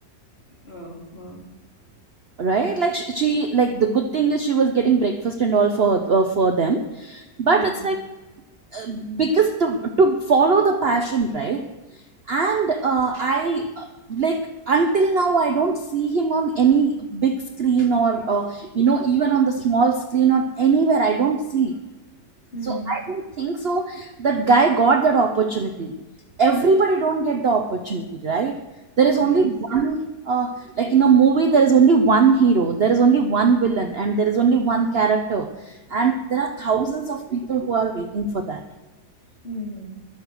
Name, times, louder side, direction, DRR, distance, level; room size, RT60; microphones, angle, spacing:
voice 1, 0.6-1.4 7.5-7.9 22.5-22.9 29.2-29.4 39.4-39.8, left 1 dB, 35° left, -3 dB, 3.7 m, -35 dB
voice 2, 2.4-8.0 8.7-11.7 12.3-21.7 22.7-25.9 26.4-28.6 29.0-38.6, right 5 dB, 45° right, 6 dB, 0.9 m, -20 dB
21.0 x 7.1 x 6.3 m, 1.1 s
omnidirectional pair, 1.8 m